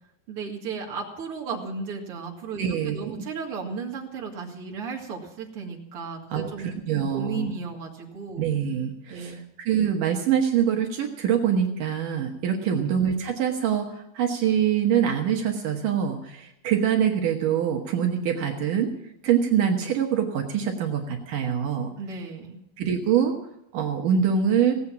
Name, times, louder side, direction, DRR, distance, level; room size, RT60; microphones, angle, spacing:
voice 1, 0.3-6.7 7.1-8.5 9.1-9.5 12.6-12.9 22.0-22.6, right 4 dB, 45° right, 0 dB, 2.3 m, -35 dB
voice 2, 2.6-3.2 6.3-7.5 8.4-18.9 19.2-21.9 22.8-23.4 23.7-24.7, right 8 dB, 65° right, 2 dB, 2.6 m, -24 dB
17.5 x 8.4 x 7.3 m, 0.81 s
omnidirectional pair, 4.3 m